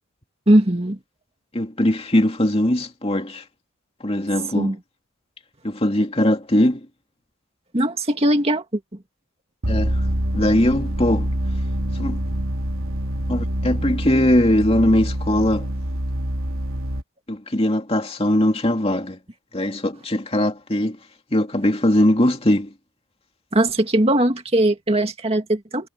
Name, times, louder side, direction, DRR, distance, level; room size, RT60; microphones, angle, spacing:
voice 1, 0.5-1.0 4.5-4.8 7.7-8.6 23.5-25.9, right 1 dB, 30° right, 2.1 m, -19 dB
voice 2, 1.5-3.4 4.0-4.8 5.6-6.9 9.7-10.0 10.3-11.3 11.9-12.2 13.3-15.7 17.3-19.2 19.5-21.0 21.3-22.7, left 1 dB, 25° left, 2.6 m, -20 dB
sound 1, 9.6-17.0, equal, 75° right, 3.0 m, -25 dB
head